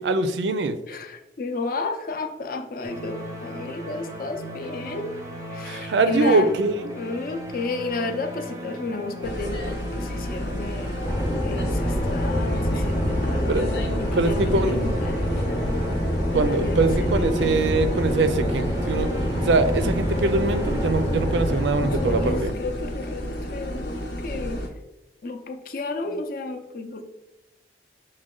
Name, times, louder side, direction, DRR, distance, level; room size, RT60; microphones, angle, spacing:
voice 1, 0.0-0.8 5.6-6.7 13.5-13.6 14.2-14.8 16.3-19.1 19.4-22.5, right 3 dB, 75° right, 10 dB, 0.4 m, -23 dB
voice 2, 0.9-5.1 5.5-6.5 6.9-11.0 11.4-15.3 16.3-17.7 22.0-24.6 25.2-27.0, left 3 dB, 50° left, 5 dB, 0.5 m, -32 dB
sound 1, 2.8-21.7, equal, 15° right, 0.5 m, -37 dB
sound 2, 9.2-24.7, equal, 75° left, 0.8 m, -32 dB
sound 3, 11.0-22.4, equal, 20° left, 0.8 m, -26 dB
6.2 x 2.2 x 3.7 m, 0.99 s
head